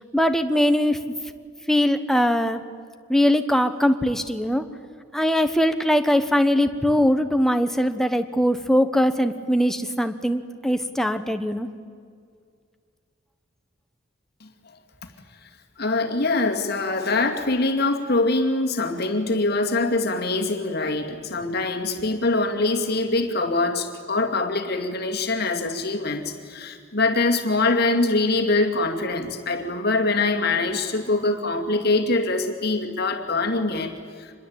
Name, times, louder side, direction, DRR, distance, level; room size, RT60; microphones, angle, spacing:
voice 1, 0.1-1.0 1.7-2.6 3.1-4.6 5.1-11.7, equal, ahead, 8 dB, 1.1 m, -21 dB
voice 2, 15.8-34.3, left 2 dB, 50° left, 4 dB, 2.3 m, -23 dB
26.0 x 21.0 x 8.8 m, 2.1 s
head